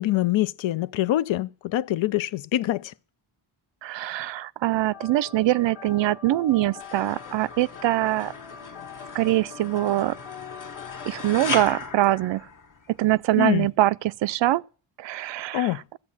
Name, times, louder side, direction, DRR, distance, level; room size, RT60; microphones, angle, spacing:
voice 1, 0.0-2.9 13.4-13.7 15.5-15.8, left 14 dB, 70° left, 0.6 m, -24 dB
voice 2, 3.8-8.3 9.1-10.2 11.1-12.4 13.0-14.6 15.0-15.8, right 15 dB, 65° right, 0.5 m, -23 dB
sound 1, 4.9-11.4, left 7 dB, 85° left, 1.8 m, -43 dB
sound 2, 6.8-13.1, left 4 dB, 40° left, 1.0 m, -37 dB
13.5 x 7.6 x 7.1 m
cardioid pair, 75°, 48 cm